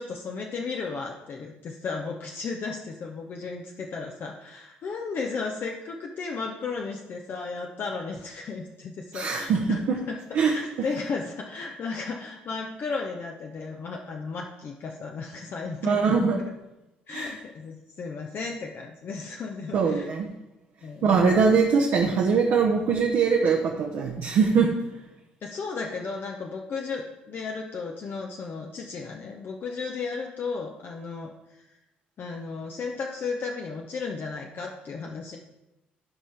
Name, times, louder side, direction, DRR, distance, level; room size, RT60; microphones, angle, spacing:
voice 1, 0.0-9.8 10.1-16.5 17.1-20.1 20.8-21.6 25.4-31.3 31.6-31.7 32.2-35.4, left 4 dB, 45° left, 1 dB, 0.8 m, -34 dB
voice 2, 9.1-10.0 10.3-10.5 15.8-16.4 17.1-17.3 19.7-20.3 21.0-24.7, right 5 dB, 55° right, -1 dB, 1.0 m, -22 dB
13.5 x 5.4 x 3.5 m, 0.95 s
figure-of-eight pair, 50°, 5 cm